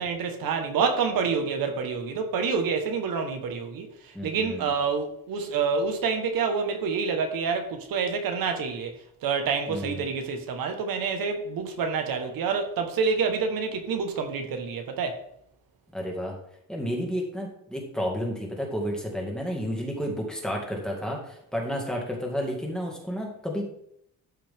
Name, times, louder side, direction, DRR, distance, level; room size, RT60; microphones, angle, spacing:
voice 1, 0.0-3.9 4.2-15.2, right 5 dB, 85° right, 1.5 m, -27 dB
voice 2, 4.1-4.7 9.7-10.0 15.9-16.3 16.7-23.6, equal, ahead, 2.1 m, -31 dB
12.5 x 5.8 x 3.7 m
cardioid pair, 165°, 34 cm